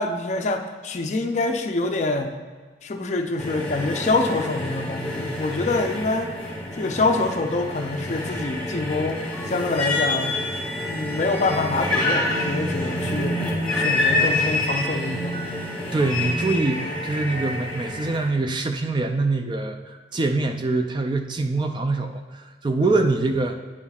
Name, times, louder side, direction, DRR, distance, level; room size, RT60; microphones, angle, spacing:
voice 1, 0.0-2.3 2.8-6.3 6.7-9.2 9.5-10.4 10.8-13.4 13.7-15.5, left 2 dB, 40° left, 5 dB, 0.4 m, -25 dB
sound 1, 3.4-18.3, left 2 dB, 5° left, 1.3 m, -28 dB
sound 2, 8.0-8.1 9.0-9.4 9.6-9.7 10.1-10.4 11.4-17.1, right 2 dB, 65° right, 1.5 m, -33 dB
sound 3, 9.3-13.1 14.7-18.4, right 1 dB, 40° right, 1.7 m, -42 dB
voice 2, 15.9-23.6, right 3 dB, 25° right, 5 dB, 0.3 m, -24 dB
9.4 x 5.6 x 2.4 m, 1.5 s
head